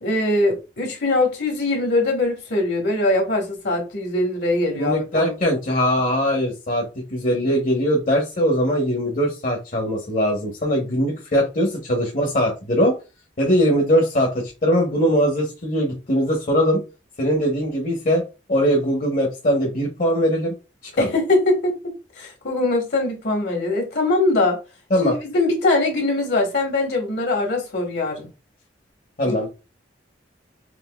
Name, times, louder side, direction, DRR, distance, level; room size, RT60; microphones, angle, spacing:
voice 1, 0.0-5.5 21.0-21.7 22.2-24.6 25.0-28.3 29.2-29.5, left 2 dB, 60° left, 1.3 m, -22 dB
voice 2, 4.7-12.9 13.4-16.8 17.2-18.2 18.5-20.5 20.8-21.1 24.9-25.1 29.2-29.5, equal, 45° left, 0.9 m, -21 dB
5.9 x 2.6 x 2.2 m
head